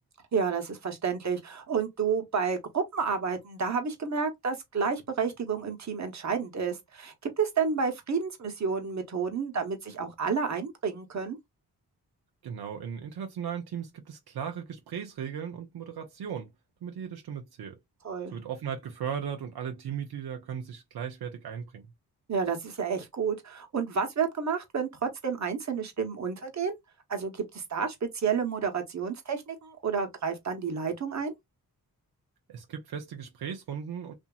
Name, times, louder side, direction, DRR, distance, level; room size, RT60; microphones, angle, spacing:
voice 1, 0.3-11.4 18.0-18.4 22.3-26.7 27.1-31.3, right 6 dB, 45° right, 1.0 m, -30 dB
voice 2, 12.4-16.5 16.8-17.8 18.3-21.9 32.5-34.1, right 8 dB, 75° right, 0.6 m, -37 dB
2.8 x 2.5 x 2.3 m
cardioid pair, 55°, 38 cm